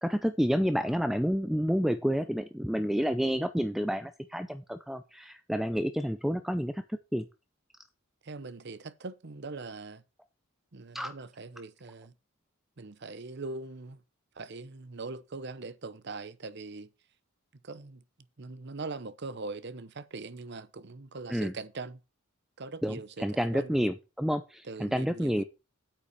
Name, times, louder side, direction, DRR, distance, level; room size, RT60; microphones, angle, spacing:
voice 1, 0.0-7.3 10.9-11.1 21.3-21.5 22.8-25.4, equal, ahead, 0.5 m, -29 dB
voice 2, 8.2-10.0 10.7-12.1 12.8-14.0 14.3-16.9 17.6-18.0 18.4-22.0 22.6-23.8 24.6-25.4, right 3 dB, 55° right, 0.8 m, -41 dB
8.5 x 5.9 x 6.6 m
head